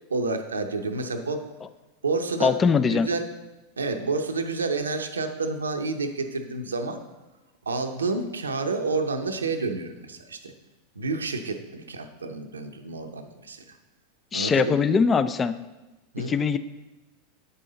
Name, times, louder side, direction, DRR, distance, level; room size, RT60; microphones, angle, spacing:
voice 1, 0.1-1.4 2.0-2.5 2.9-3.3 3.8-7.0 7.7-10.5 11.0-13.6 14.3-14.8 16.1-16.3, right 3 dB, 80° right, 5 dB, 0.6 m, -29 dB
voice 2, 2.4-3.1 14.3-15.6 16.2-16.6, left 5 dB, 25° left, 13 dB, 0.4 m, -22 dB
8.3 x 5.5 x 3.9 m, 1.1 s
figure-of-eight pair, 90°, 0 cm